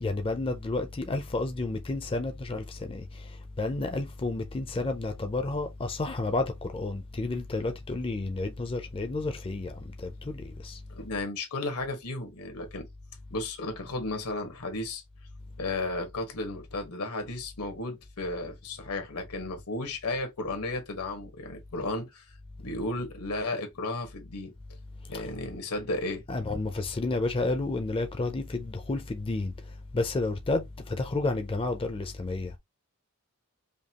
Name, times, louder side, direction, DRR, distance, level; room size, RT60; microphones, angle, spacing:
voice 1, 0.0-10.8 25.1-25.2 26.3-29.5 29.9-32.5, left 2 dB, 25° left, 0.4 m, -31 dB
voice 2, 10.9-12.9 13.3-15.0 15.6-24.5 25.1-26.2, left 2 dB, 85° left, 1.3 m, -34 dB
5.1 x 2.3 x 2.8 m
head